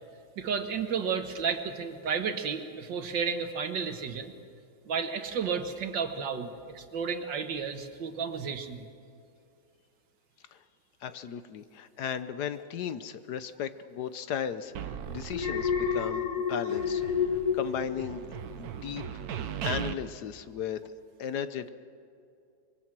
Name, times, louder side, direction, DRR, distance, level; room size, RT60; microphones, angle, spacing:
voice 1, 0.4-4.3 4.9-8.9, right 6 dB, 80° right, 7 dB, 2.1 m, -32 dB
voice 2, 11.0-17.0 17.5-18.3 18.6-19.0 19.6-20.8 21.2-21.7, left 8 dB, 65° left, 12 dB, 1.3 m, -35 dB
sound 1, 14.7-16.4 16.7-19.9, right 9 dB, 60° right, 1.2 m, -38 dB
Alarm, 15.3-18.6 19.0-19.4, left 7 dB, 35° left, 0.7 m, -30 dB
24.5 x 22.0 x 6.1 m, 2.5 s
omnidirectional pair, 2.0 m